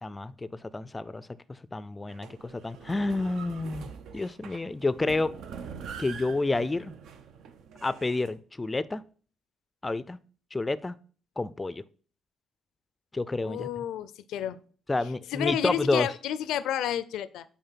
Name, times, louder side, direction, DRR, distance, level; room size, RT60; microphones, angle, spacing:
voice 1, 0.0-5.4 6.0-6.9 7.8-9.0 9.8-10.2 10.5-11.0 11.4-11.8 13.1-13.7 14.9-16.1, left 2 dB, 20° left, 0.3 m, -29 dB
sound 1, 2.1-8.3, right 7 dB, 80° right, 0.7 m, -44 dB
voice 2, 13.4-14.6 15.3-17.4, left 10 dB, 85° left, 0.4 m, -30 dB
5.5 x 4.2 x 5.6 m
cardioid pair, 90°, 0 cm